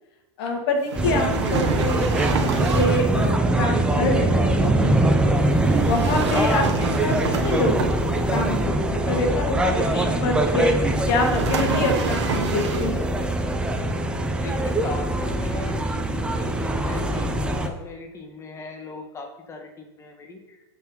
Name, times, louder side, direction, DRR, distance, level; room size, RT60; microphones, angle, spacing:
voice 1, 0.4-5.4 5.9-7.1 7.4-7.9 8.3-10.8 11.0-13.0, left 2 dB, 60° left, 2 dB, 1.9 m, -26 dB
sound 1, 0.9-17.7, right 1 dB, 5° right, 0.6 m, -23 dB
sound 2, 0.9-3.1 5.7-8.4 11.1-13.1, right 5 dB, 85° right, 1.2 m, -28 dB
voice 2, 14.3-20.6, left 3 dB, 20° left, 3 dB, 1.4 m, -39 dB
7.3 x 4.8 x 5.7 m, 1.0 s
supercardioid pair, 130°, 14 cm